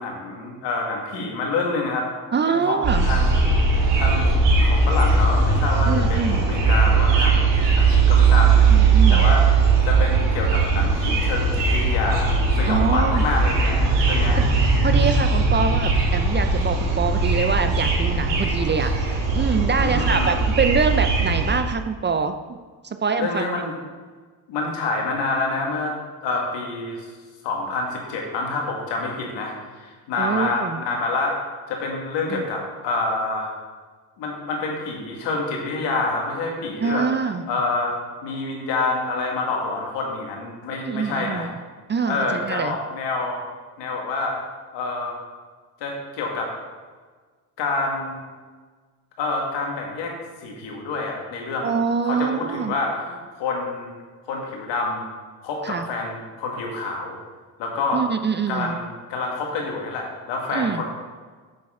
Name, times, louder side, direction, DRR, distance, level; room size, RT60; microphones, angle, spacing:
voice 1, 0.0-2.1 2.5-3.4 4.0-7.5 7.8-9.4 9.8-14.4 19.8-20.4 23.2-23.7 24.5-26.0 26.2-27.1 27.4-31.4 31.7-33.5 34.2-37.1 37.5-38.0 38.2-41.5 42.1-43.4 43.8-44.4 44.7-45.2 45.8-46.5 47.6-48.2 49.2-50.2 50.4-51.7 52.0-53.9 54.3-55.1 55.4-57.2 57.6-58.0 58.5-60.8, left 3 dB, 80° left, 0 dB, 1.8 m, -27 dB
voice 2, 2.3-3.1 5.9-6.4 8.7-9.2 12.7-13.2 14.3-14.5 14.8-22.6 22.8-23.5 30.2-30.8 32.3-32.4 36.8-37.4 40.8-41.5 41.9-42.7 51.6-52.7 55.6-55.8 57.9-58.8 60.5-60.8, right 5 dB, 25° right, 9 dB, 0.4 m, -24 dB
sound 1, 2.8-21.6, right 4 dB, 80° right, 1.8 m, -19 dB
7.6 x 6.0 x 3.7 m, 1.4 s
supercardioid pair, 75°, 43 cm